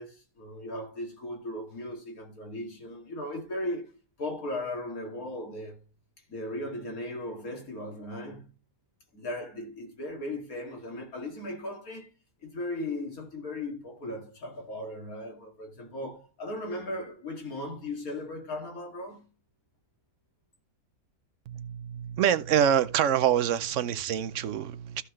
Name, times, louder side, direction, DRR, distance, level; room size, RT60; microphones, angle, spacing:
voice 1, 0.0-5.8 6.3-8.5 9.1-12.1 12.4-19.3, left 1 dB, 70° left, 2.9 m, -37 dB
voice 2, 21.5-25.0, right 9 dB, 65° right, 0.9 m, -26 dB
14.5 x 5.7 x 3.2 m
omnidirectional pair, 1.6 m